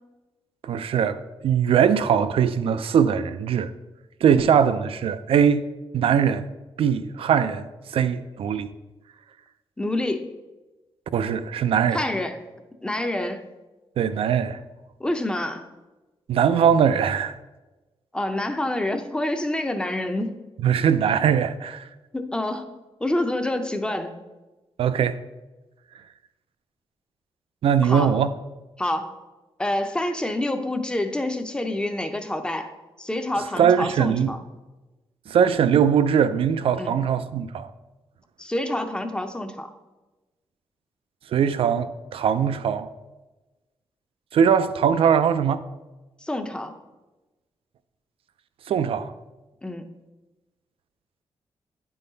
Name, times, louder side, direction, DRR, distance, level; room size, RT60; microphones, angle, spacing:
voice 1, 0.6-3.7 4.2-5.7 5.9-6.5 6.8-7.7 7.9-8.7 11.1-12.0 14.0-14.6 16.3-17.3 20.6-21.8 24.8-25.2 27.6-28.3 33.6-34.3 35.3-37.7 41.3-42.9 44.3-45.6 48.7-49.1, right 8 dB, 70° right, 0.4 m, -21 dB
voice 2, 9.8-10.3 11.9-12.5 12.8-13.5 15.0-15.7 18.1-20.4 22.1-22.7 23.0-24.2 27.8-28.2 28.8-29.1 29.6-32.7 33.0-34.4 36.8-36.9 38.4-39.7 46.2-46.8 49.6-49.9, left 1 dB, 10° left, 0.5 m, -27 dB
9.2 x 3.8 x 3.9 m
wide cardioid pair, 115°, 10 cm